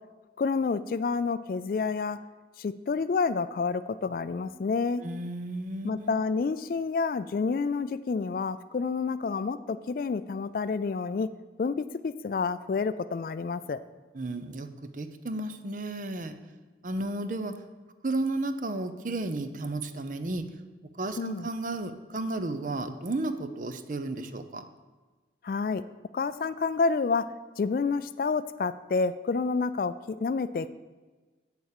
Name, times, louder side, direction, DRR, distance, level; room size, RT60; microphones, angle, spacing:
voice 1, 0.4-2.2 2.6-5.0 5.8-11.3 11.6-13.8 21.2-21.5 25.4-25.8 26.1-27.2 27.6-30.7, left 4 dB, 50° left, 14 dB, 0.3 m, -29 dB
voice 2, 5.0-6.2 14.1-14.7 14.9-16.4 16.8-17.5 18.0-20.4 21.0-24.6, right 2 dB, 45° right, 10 dB, 0.6 m, -33 dB
8.3 x 7.1 x 6.6 m, 1.3 s
head